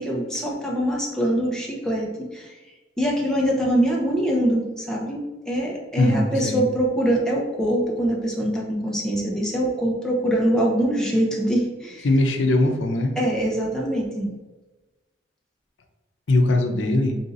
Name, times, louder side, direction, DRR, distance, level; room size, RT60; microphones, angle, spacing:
voice 1, 0.0-2.5 3.0-12.1 13.2-14.3, right 1 dB, 5° left, -3 dB, 0.8 m, -23 dB
voice 2, 6.0-6.6 12.0-13.1 16.3-17.2, left 2 dB, 85° left, 4 dB, 0.6 m, -20 dB
3.8 x 2.8 x 3.9 m, 1.2 s
head